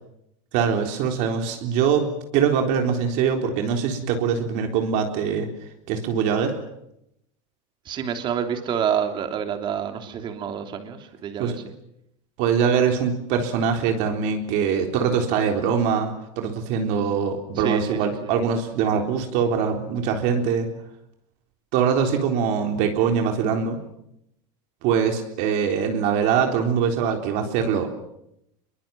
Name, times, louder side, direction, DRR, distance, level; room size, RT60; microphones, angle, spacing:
voice 1, 0.5-5.5 5.9-6.6 11.4-11.6 12.4-20.7 21.7-23.8 24.8-27.9, right 7 dB, 50° right, 4 dB, 3.8 m, -23 dB
voice 2, 7.8-11.6 17.6-18.3, right 8 dB, 30° right, 6 dB, 3.2 m, -28 dB
27.0 x 23.0 x 7.6 m, 0.78 s
supercardioid pair, 160°, 16 cm